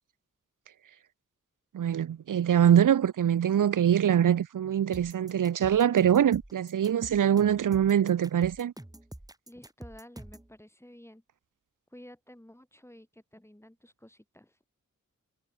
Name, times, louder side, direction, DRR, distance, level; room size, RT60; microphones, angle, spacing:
voice 1, 1.7-8.7, right 9 dB, 85° right, 0.6 m, -23 dB
sound 1, 4.9-10.5, right 1 dB, 10° right, 2.7 m, -46 dB
voice 2, 9.5-11.2 11.9-14.6, left 1 dB, 10° left, 7.0 m, -52 dB
wide cardioid pair, 80°, 31 cm